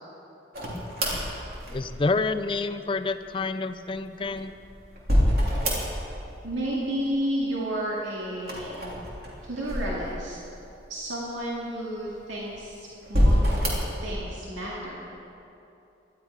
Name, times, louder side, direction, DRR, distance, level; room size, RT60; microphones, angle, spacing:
sound 1, 0.5-2.2 4.0-6.3 6.5-7.2 8.4-10.5 11.1-11.2 12.0-12.6 13.0-14.0, equal, 50° right, 3.0 m, -26 dB
voice 1, 1.7-4.6, left 3 dB, 25° left, 10 dB, 0.4 m, -28 dB
voice 2, 6.4-8.8 9.4-10.4 10.9-13.4 13.6-15.0, right 1 dB, 90° right, -5 dB, 2.3 m, -31 dB
18.5 x 12.5 x 4.9 m, 2.8 s
head